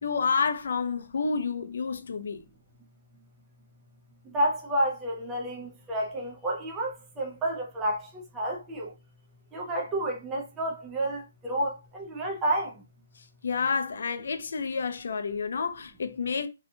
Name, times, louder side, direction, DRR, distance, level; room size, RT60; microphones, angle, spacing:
voice 1, 0.0-2.4 13.4-16.5, left 5 dB, 55° left, 0.4 m, -29 dB
voice 2, 4.2-8.9 9.5-12.8, right 1 dB, 10° right, 0.4 m, -30 dB
2.7 x 2.1 x 2.6 m
hypercardioid pair, 175°, 0 cm